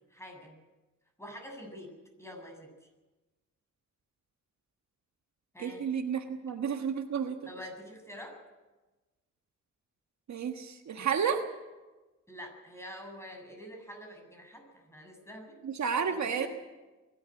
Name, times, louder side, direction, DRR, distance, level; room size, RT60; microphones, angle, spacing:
voice 1, 0.1-0.6 1.2-2.8 5.5-5.8 7.5-8.4 12.3-15.6 16.1-16.5, equal, 10° left, 3 dB, 7.2 m, -46 dB
voice 2, 5.6-7.4 10.3-11.4 15.6-16.5, right 7 dB, 65° right, 6 dB, 1.5 m, -31 dB
23.0 x 12.5 x 9.0 m, 1.2 s
cardioid pair, 70°, 30 cm